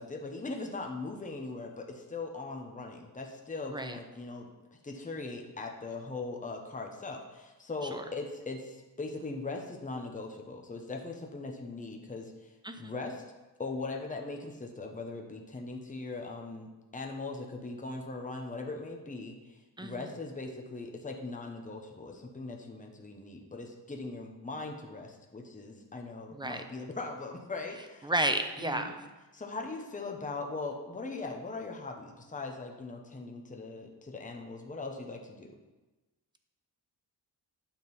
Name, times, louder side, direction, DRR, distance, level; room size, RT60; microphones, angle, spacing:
voice 1, 0.0-4.5 4.8-13.2 13.6-28.1 28.6-28.9 29.3-35.5, left 3 dB, 20° left, 2 dB, 0.9 m, -40 dB
voice 2, 19.8-20.1 26.3-26.6 28.0-28.9, right 1 dB, 10° right, 6 dB, 0.6 m, -32 dB
9.4 x 3.9 x 7.1 m, 1.1 s
wide cardioid pair, 115°, 42 cm